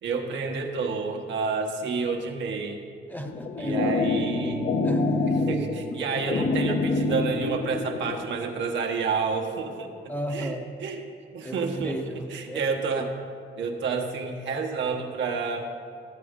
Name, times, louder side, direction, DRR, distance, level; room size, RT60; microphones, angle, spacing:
voice 1, 0.0-2.8 3.6-4.7 5.3-9.9 10.3-10.5 10.8-11.0 11.3-12.0 12.3-13.1 13.6-15.7, right 5 dB, 70° right, 2 dB, 1.0 m, -29 dB
voice 2, 3.1-3.9 4.8-5.4 10.1-10.8 11.4-13.1, equal, 10° left, 4 dB, 0.7 m, -35 dB
sound 1, 3.3-8.2, left 3 dB, 50° left, 0.8 m, -26 dB
12.5 x 7.6 x 3.6 m, 2.4 s
cardioid pair, 90°, 20 cm